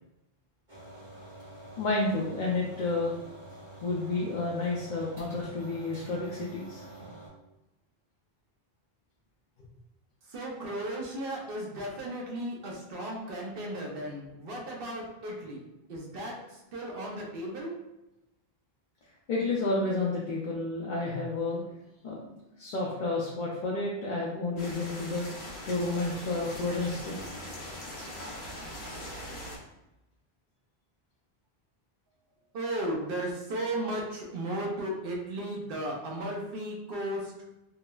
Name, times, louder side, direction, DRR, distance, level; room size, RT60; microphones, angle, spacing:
sound 1, 0.7-7.3, right 1 dB, 50° right, 1.3 m, -47 dB
voice 1, 1.8-3.1 3.8-6.9 19.3-21.6 22.0-22.2 22.6-25.3 25.7-27.2, left 2 dB, 60° left, -4 dB, 0.6 m, -30 dB
voice 2, 10.3-15.6 15.9-17.7 32.5-37.3, right 1 dB, 65° right, -1 dB, 0.8 m, -35 dB
sound 2, 24.6-29.6, left 1 dB, 80° left, 1.0 m, -41 dB
3.7 x 2.0 x 2.2 m, 0.93 s
omnidirectional pair, 1.0 m